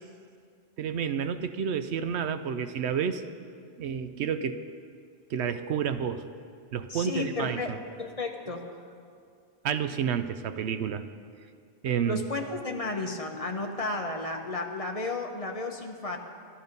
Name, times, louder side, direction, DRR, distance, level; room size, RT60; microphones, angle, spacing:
voice 1, 0.8-3.2 3.8-4.6 5.3-6.3 6.7-7.8 9.6-11.1 11.8-12.2, right 7 dB, 75° right, 11 dB, 0.9 m, -30 dB
voice 2, 6.9-8.7 12.0-16.2, left 2 dB, 35° left, 3 dB, 0.9 m, -33 dB
13.0 x 12.5 x 5.3 m, 2.2 s
omnidirectional pair, 1.1 m